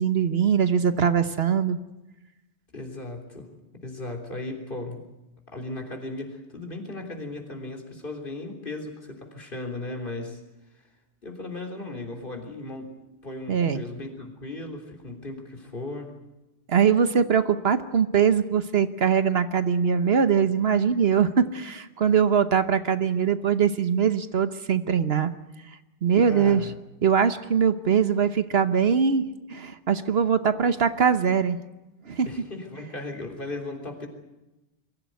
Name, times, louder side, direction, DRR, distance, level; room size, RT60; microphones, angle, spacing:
voice 1, 0.0-1.8 13.5-13.8 16.7-25.3 26.0-26.6 27.0-31.6 32.1-32.3, right 7 dB, 65° right, 11 dB, 1.2 m, -22 dB
voice 2, 2.7-3.5 3.7-5.0 5.5-10.4 11.2-13.0 13.2-16.1 26.3-26.7 32.3-34.1, left 2 dB, 50° left, 2 dB, 3.7 m, -36 dB
23.0 x 15.5 x 9.4 m, 1.0 s
omnidirectional pair, 1.2 m